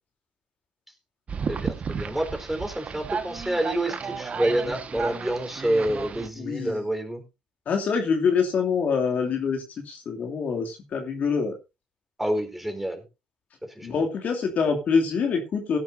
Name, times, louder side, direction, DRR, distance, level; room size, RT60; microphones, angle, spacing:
sound 1, 1.3-6.3, right 5 dB, 45° right, 1.6 m, -33 dB
voice 1, 1.5-7.2 12.2-13.0 13.6-14.0, right 1 dB, 5° right, 6 dB, 4.2 m, -28 dB
voice 2, 6.4-6.8 7.7-11.5 13.8-15.8, left 5 dB, 55° left, 2 dB, 2.7 m, -25 dB
17.5 x 10.0 x 2.7 m, 0.27 s
hypercardioid pair, 55°, 3 cm